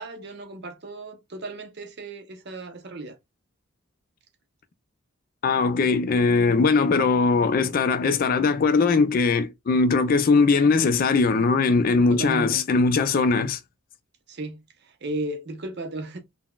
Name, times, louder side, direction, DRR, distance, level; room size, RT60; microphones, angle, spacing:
voice 1, 0.0-3.2 12.1-12.7 14.3-16.2, right 2 dB, 50° right, 0.6 m, -35 dB
voice 2, 5.4-13.6, left 4 dB, 40° left, 0.3 m, -20 dB
3.9 x 2.1 x 2.2 m
head